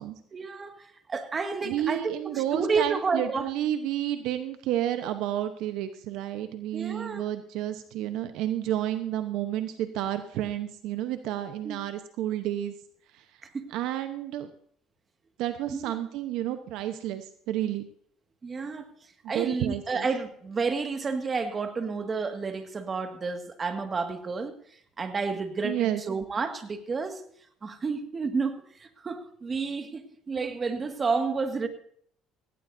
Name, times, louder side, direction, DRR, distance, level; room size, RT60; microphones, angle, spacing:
voice 1, 0.3-3.5 6.7-7.2 11.6-11.8 13.4-13.7 15.7-15.9 18.4-18.9 19.3-24.6 25.0-27.2 27.6-31.7, right 4 dB, 30° right, 1.9 m, -30 dB
voice 2, 1.6-12.7 13.7-14.5 15.4-17.9 19.3-20.0 25.6-26.0, right 12 dB, 75° right, 0.9 m, -30 dB
17.5 x 16.5 x 2.7 m
supercardioid pair, 95°, 0 cm